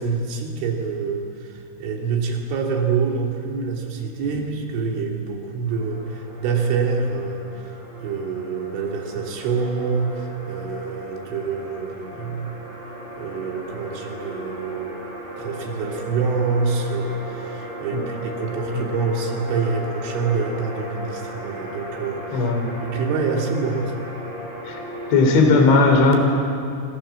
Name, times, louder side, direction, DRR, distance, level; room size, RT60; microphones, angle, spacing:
voice 1, 0.0-12.6 13.2-15.0 15.4-22.5 22.8-23.9, right 5 dB, 85° right, 1 dB, 5.4 m, -26 dB
sound 1, 5.7-25.6, equal, 25° right, 6.2 m, -35 dB
voice 2, 22.3-22.7 24.7-24.8 25.1-26.2, left 3 dB, 75° left, 4 dB, 5.8 m, -17 dB
29.0 x 25.0 x 7.3 m, 2.4 s
omnidirectional pair, 5.4 m